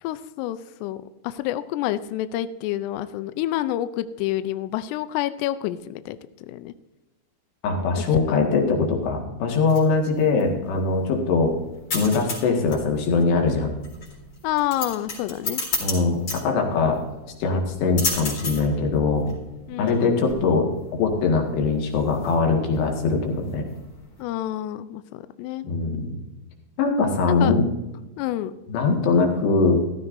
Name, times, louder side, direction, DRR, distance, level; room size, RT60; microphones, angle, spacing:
voice 1, 0.0-6.7 8.3-8.5 14.4-15.6 19.7-20.1 24.2-25.7 27.3-27.5 28.2-28.5, left 13 dB, 90° left, 13 dB, 2.4 m, -28 dB
voice 2, 7.6-11.5 11.9-13.7 15.8-17.0 17.4-19.3 19.8-23.6 25.6-26.1 26.8-27.6 28.7-29.8, left 4 dB, 65° left, 2 dB, 3.7 m, -22 dB
sound 1, 9.4-24.2, left 3 dB, 35° left, 4.8 m, -34 dB
15.0 x 14.0 x 2.6 m, 1.1 s
omnidirectional pair, 5.4 m